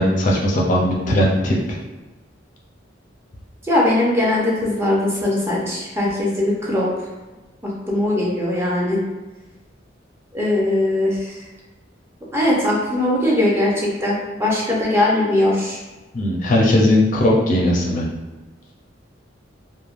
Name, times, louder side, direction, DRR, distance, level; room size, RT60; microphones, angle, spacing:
voice 1, 0.0-1.6 16.1-18.0, left 1 dB, 45° left, -3 dB, 0.4 m, -18 dB
voice 2, 3.7-6.9 7.9-9.0 10.3-11.1 12.3-15.8, left 1 dB, 15° right, -5 dB, 0.6 m, -20 dB
3.2 x 2.1 x 2.4 m, 1.2 s
head